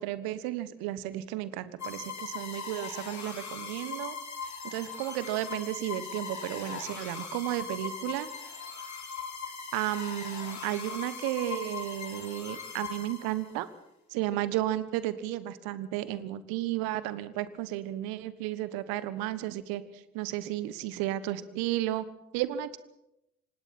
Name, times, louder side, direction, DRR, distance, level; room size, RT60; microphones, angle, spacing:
voice 1, 0.0-4.2 4.6-8.3 9.7-13.7 14.1-22.1 22.3-22.8, right 14 dB, 65° right, 15 dB, 1.3 m, -33 dB
sound 1, 1.8-13.6, left 5 dB, 45° left, 4.7 m, -40 dB
26.5 x 24.5 x 4.4 m, 0.88 s
figure-of-eight pair, 45°, 38 cm